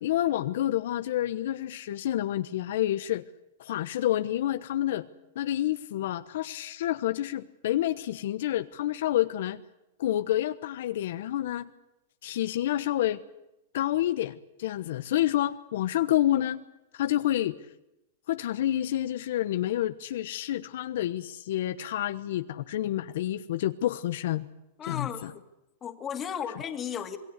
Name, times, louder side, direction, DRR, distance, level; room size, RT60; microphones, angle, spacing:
voice 1, 0.0-3.2 3.6-5.0 5.3-9.6 10.0-11.7 12.2-13.2 13.7-16.6 16.9-17.6 18.3-24.5 24.8-25.3, left 13 dB, 70° left, 1.1 m, -28 dB
voice 2, 24.8-25.3 25.8-27.2, left 8 dB, 20° left, 2.5 m, -34 dB
27.0 x 19.5 x 8.2 m
supercardioid pair, 145°, 0 cm